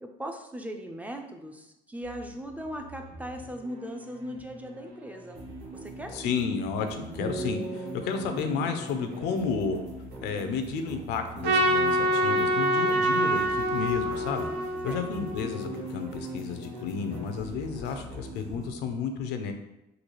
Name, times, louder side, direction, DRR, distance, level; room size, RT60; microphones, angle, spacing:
voice 1, 0.0-5.4 5.7-6.1 14.9-15.1, equal, 10° right, 4 dB, 0.3 m, -39 dB
sound 1, 2.0-18.7, right 1 dB, 70° right, 1.1 m, -42 dB
voice 2, 6.1-9.8 10.2-14.5 14.8-19.5, left 5 dB, 85° left, 7 dB, 0.5 m, -32 dB
sound 2, 7.2-10.7, right 2 dB, 40° right, 1.1 m, -40 dB
Trumpet, 11.4-15.8, right 1 dB, 85° right, 0.5 m, -26 dB
3.8 x 2.3 x 3.1 m, 0.90 s
cardioid pair, 110°, 17 cm